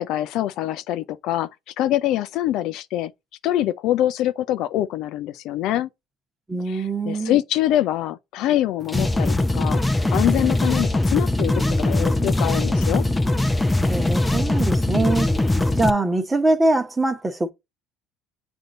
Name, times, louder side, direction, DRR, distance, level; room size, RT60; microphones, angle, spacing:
voice 1, 0.0-1.5 1.8-3.1 3.4-5.9 6.7-9.8 10.1-13.0, left 13 dB, 60° left, 0.4 m, -24 dB
voice 2, 6.5-7.4 13.8-15.3 15.8-17.5, right 2 dB, 20° right, 1.2 m, -22 dB
sound 1, 8.8-15.9, left 2 dB, 10° left, 0.6 m, -21 dB
7.8 x 2.7 x 5.2 m
hypercardioid pair, 70°, 0 cm